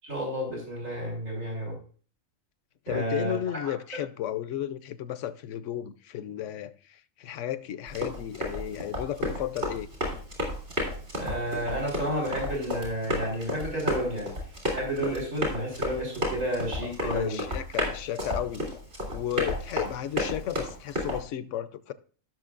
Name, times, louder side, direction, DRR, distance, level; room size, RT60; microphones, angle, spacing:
voice 1, 0.0-1.7 2.9-3.4 3.6-4.0 11.2-14.3 14.7-17.4, right 1 dB, 75° right, 3.6 m, -31 dB
voice 2, 2.9-9.9 16.8-18.7 19.1-21.9, left 11 dB, 70° left, 0.9 m, -34 dB
Run, 7.9-21.2, left 1 dB, 60° right, 3.8 m, -32 dB
16.5 x 6.3 x 2.5 m
omnidirectional pair, 1.4 m